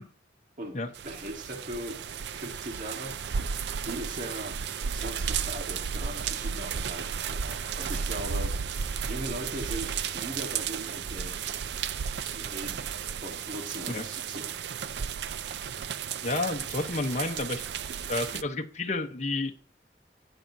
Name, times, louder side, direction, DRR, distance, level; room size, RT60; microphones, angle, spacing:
voice 1, 0.6-2.0 2.3-11.5 12.2-12.9 13.2-14.5, right 1 dB, 50° right, 1.6 m, -40 dB
sound 1, 0.9-18.4, right 7 dB, 70° right, 0.5 m, -34 dB
voice 2, 16.2-17.6 18.1-19.6, left 2 dB, 40° left, 0.9 m, -30 dB
12.0 x 9.1 x 2.7 m
head